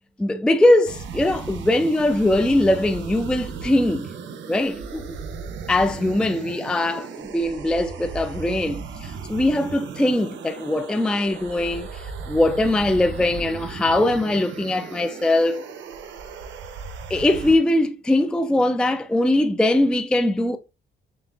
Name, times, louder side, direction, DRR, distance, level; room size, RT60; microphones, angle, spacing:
voice 1, 0.2-4.1 4.5-5.2 5.7-15.7 17.1-20.6, left 1 dB, 5° left, 0.3 m, -21 dB
sound 1, 0.8-17.6, right 5 dB, 70° right, 0.7 m, -36 dB
6.7 x 2.4 x 2.4 m
cardioid pair, 90°, 20 cm